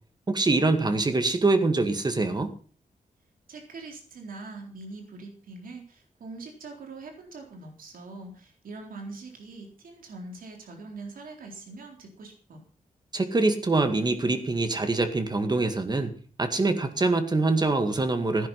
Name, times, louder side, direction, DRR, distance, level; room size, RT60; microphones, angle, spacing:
voice 1, 0.3-2.5 13.1-16.1 16.4-18.5, right 3 dB, 30° right, 8 dB, 2.0 m, -24 dB
voice 2, 3.5-12.6, right 3 dB, 90° right, 2 dB, 4.0 m, -43 dB
16.0 x 10.5 x 5.8 m, 0.42 s
wide cardioid pair, 125°, 14 cm